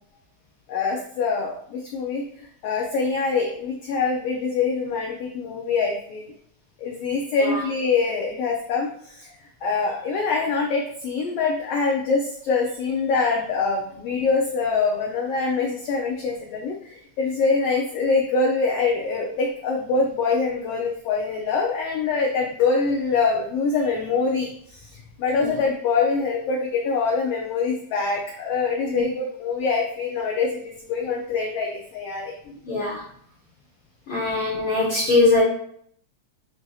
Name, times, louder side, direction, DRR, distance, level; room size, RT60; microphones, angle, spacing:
voice 1, 0.7-6.2 6.8-9.3 9.6-32.3, left 4 dB, 85° left, -1 dB, 1.3 m, -24 dB
voice 2, 32.7-33.0 34.1-35.4, left 3 dB, 70° left, -5 dB, 1.2 m, -21 dB
7.3 x 2.6 x 2.3 m, 0.65 s
omnidirectional pair, 3.4 m